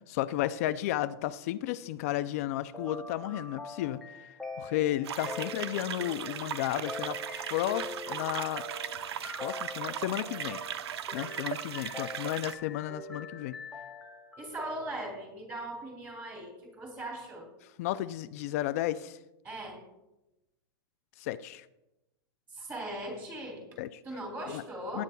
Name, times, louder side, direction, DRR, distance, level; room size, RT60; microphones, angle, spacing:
voice 1, 0.1-4.0 4.6-7.2 7.5-8.6 9.4-10.6 11.1-13.6 17.8-19.2 21.2-21.7 23.8-24.0 24.5-24.6 24.9-25.0, left 14 dB, 35° left, 13 dB, 0.4 m, -33 dB
sound 1, 2.7-15.1, left 3 dB, ahead, 0.7 m, -44 dB
sound 2, 5.0-12.5, right 9 dB, 80° right, 0.7 m, -38 dB
voice 2, 14.4-17.5 19.4-19.8 22.5-23.6 24.0-25.0, right 1 dB, 15° right, 1 dB, 2.7 m, -39 dB
19.5 x 9.5 x 2.3 m, 0.96 s
supercardioid pair, 170°, 13 cm